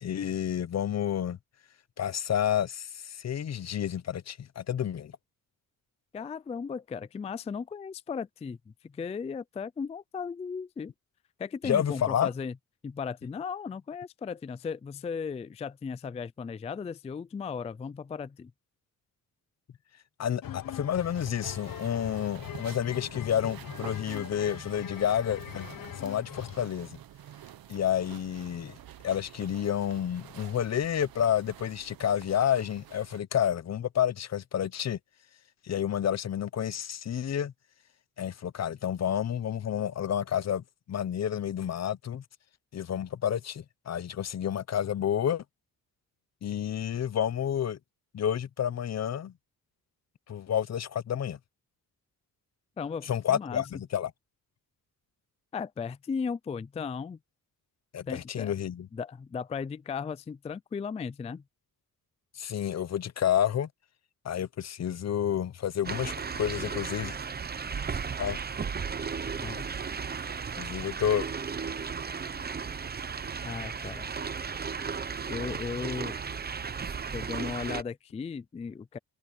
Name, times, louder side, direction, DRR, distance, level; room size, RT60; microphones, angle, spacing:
voice 1, 0.0-1.4 2.0-5.1 11.6-12.3 20.2-25.7 26.0-27.0 27.7-28.7 29.0-35.0 35.6-37.5 38.2-42.2 42.7-45.4 46.4-47.8 48.1-49.3 50.3-51.4 53.1-54.1 57.9-58.9 62.4-63.7 64.2-67.2 68.2-68.4 70.6-71.3, left 9 dB, 45° left, 0.7 m, -30 dB
voice 2, 6.1-10.9 11.4-12.5 12.8-18.5 52.8-53.6 55.5-57.2 58.1-58.5 58.9-61.4 69.4-69.7 73.4-74.1 75.3-76.2 77.1-79.0, left 5 dB, 20° left, 0.3 m, -36 dB
sound 1, 20.4-26.7, left 11 dB, 65° left, 1.1 m, -42 dB
sound 2, 21.0-33.2, right 11 dB, 70° right, 1.0 m, -48 dB
sound 3, 65.8-77.8, right 6 dB, 25° right, 0.7 m, -35 dB
wide cardioid pair, 135°, 36 cm